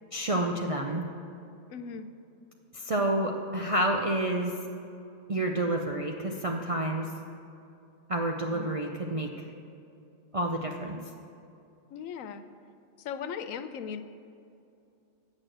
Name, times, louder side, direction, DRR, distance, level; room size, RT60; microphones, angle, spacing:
voice 1, 0.1-1.0 2.7-4.5 5.3-7.1 8.1-9.3 10.3-11.0, right 1 dB, 50° right, 1 dB, 0.4 m, -29 dB
voice 2, 1.7-2.1 8.5-8.8 11.9-12.4 13.0-14.0, left 7 dB, 80° left, 11 dB, 1.0 m, -38 dB
8.6 x 6.2 x 7.7 m, 2.6 s
omnidirectional pair, 1.4 m